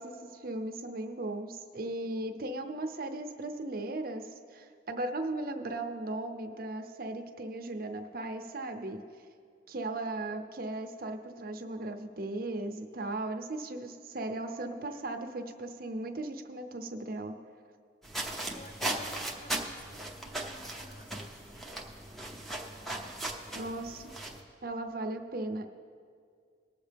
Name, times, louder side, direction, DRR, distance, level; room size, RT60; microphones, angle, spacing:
voice 1, 0.0-9.0 9.7-17.4 23.5-24.1 24.6-25.7, right 2 dB, 50° right, 5 dB, 0.7 m, -37 dB
sound 1, 18.0-24.4, right 1 dB, ahead, 0.7 m, -38 dB
voice 2, 18.5-21.7 22.8-23.7, equal, 45° left, 4 dB, 0.9 m, -55 dB
19.5 x 7.3 x 3.4 m, 2.1 s
head